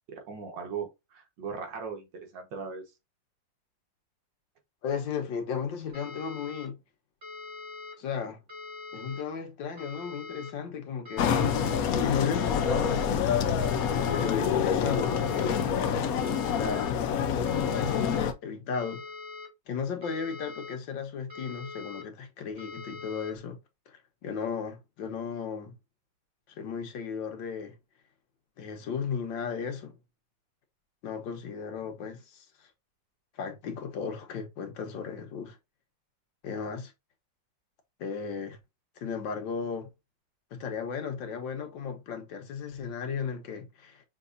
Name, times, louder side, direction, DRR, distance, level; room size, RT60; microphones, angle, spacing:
voice 1, 0.1-2.1 2.3-2.9, right 6 dB, 75° right, 1.9 m, -38 dB
voice 2, 4.8-6.8 8.0-8.4 8.9-11.3 11.9-13.3 14.2-15.1 16.5-16.9 17.7-19.0 19.7-23.6 23.9-25.7 26.5-27.7 28.6-29.9 31.0-32.7 33.4-35.6 36.4-36.9 38.0-38.6 39.0-39.9 40.5-44.0, left 6 dB, 85° left, 1.7 m, -35 dB
sound 1, 5.9-6.7 7.2-7.9 8.5-9.2 9.8-10.5 11.1-11.8 12.3-13.1 13.6-14.4 14.9-15.6 16.2-16.9 17.5-18.2 18.7-19.5 20.0-20.8 21.3-22.0 22.6-23.3, left 3 dB, 30° right, 2.8 m, -42 dB
sound 2, 11.2-18.3, left 7 dB, 65° left, 0.9 m, -27 dB
6.0 x 2.9 x 2.5 m
omnidirectional pair, 2.0 m